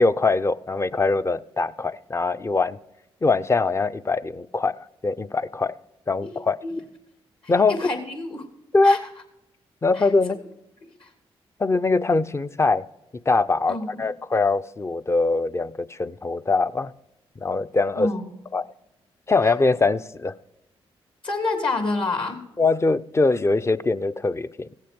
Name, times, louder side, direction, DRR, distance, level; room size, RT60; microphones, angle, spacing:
voice 1, 0.0-2.8 3.2-4.8 5.0-5.7 6.1-6.6 7.5-7.8 8.7-9.0 9.8-10.4 11.6-12.8 13.3-16.9 17.4-18.1 18.5-18.6 19.3-20.3 22.6-24.7, left 3 dB, 25° left, 13 dB, 0.6 m, -22 dB
voice 2, 7.4-8.5 8.8-9.0 9.9-10.1 11.0-11.1 13.7-14.0 18.0-18.2 19.4-19.5 21.2-22.4, left 3 dB, 55° left, 6 dB, 2.9 m, -28 dB
16.5 x 7.5 x 5.2 m, 0.91 s
supercardioid pair, 60°, 10 cm